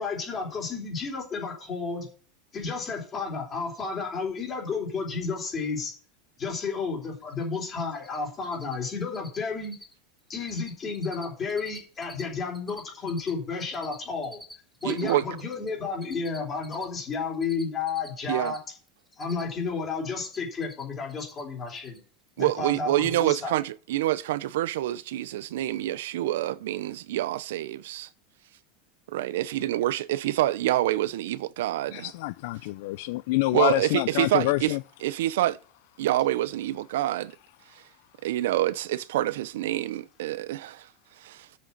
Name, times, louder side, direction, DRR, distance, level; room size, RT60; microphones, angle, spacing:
voice 1, 0.0-2.1 2.5-5.9 6.4-9.7 10.3-14.4 14.8-18.6 19.2-22.0 22.4-23.6, left 4 dB, 20° left, 3.7 m, -32 dB
Cricket, 7.3-7.4 7.7-8.2 8.4-8.7 9.0-9.4 9.6-9.9 10.2-10.7 10.9-12.2 12.5-15.7 16.0-18.6 18.9-19.7 19.9-20.8 21.1-21.4 21.7-22.0, equal, ahead, 1.1 m, -46 dB
voice 2, 14.8-15.4 18.3-18.5 22.4-28.1 29.1-32.1 33.5-34.7 35.0-35.6 36.0-37.3 38.2-40.9 41.2-41.5, right 14 dB, 80° right, 0.6 m, -27 dB
voice 3, 31.9-34.8 37.7-37.8, left 19 dB, 55° left, 0.4 m, -27 dB
7.6 x 6.6 x 7.4 m
supercardioid pair, 175°, 0 cm